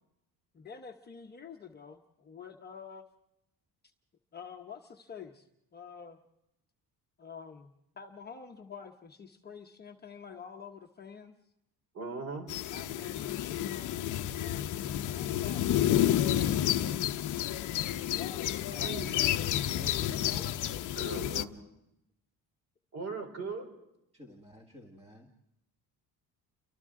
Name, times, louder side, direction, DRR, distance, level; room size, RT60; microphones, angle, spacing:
voice 1, 0.5-3.1 4.3-5.5 5.7-6.2 7.2-11.3 12.7-16.1 18.0-18.8, left 6 dB, 25° left, 2 dB, 0.9 m, -47 dB
voice 2, 11.9-12.5 18.8-19.1 21.0-21.5 22.9-23.7, right 3 dB, 40° right, 4 dB, 3.9 m, -38 dB
sound 1, 12.5-21.4, left 12 dB, 50° left, 0.7 m, -30 dB
voice 3, 19.7-20.6 24.1-25.3, left 2 dB, 15° right, 1 dB, 1.7 m, -49 dB
30.0 x 24.5 x 3.7 m, 0.84 s
cardioid pair, 180°, 39 cm